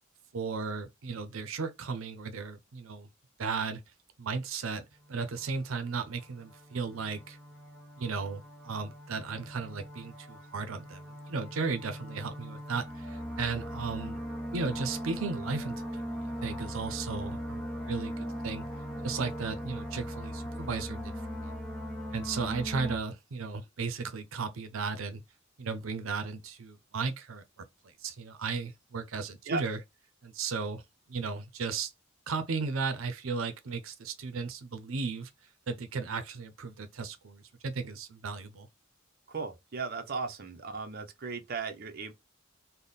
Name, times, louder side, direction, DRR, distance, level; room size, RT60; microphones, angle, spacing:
voice 1, 0.3-3.1 3.4-3.8 4.2-7.4 8.0-14.2 14.5-18.6 19.0-21.5 22.1-25.2 25.6-27.4 27.8-29.8 30.2-30.8 31.1-31.9 32.3-35.3 35.7-38.7, right 4 dB, 90° right, 0.6 m, -35 dB
sound 1, 4.9-23.0, equal, 5° left, 0.8 m, -40 dB
voice 2, 39.3-42.1, right 4 dB, 50° right, 0.7 m, -36 dB
3.5 x 2.1 x 3.9 m
head